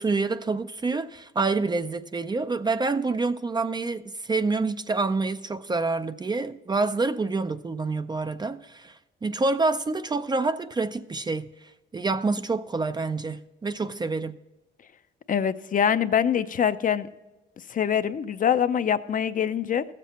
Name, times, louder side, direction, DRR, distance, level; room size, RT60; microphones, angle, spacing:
voice 1, 0.0-11.5 11.9-14.4, right 3 dB, 20° right, 0.4 m, -27 dB
voice 2, 15.3-17.1 17.7-19.9, left 8 dB, 40° left, 0.5 m, -24 dB
14.0 x 7.5 x 4.1 m
cardioid pair, 90°, 20 cm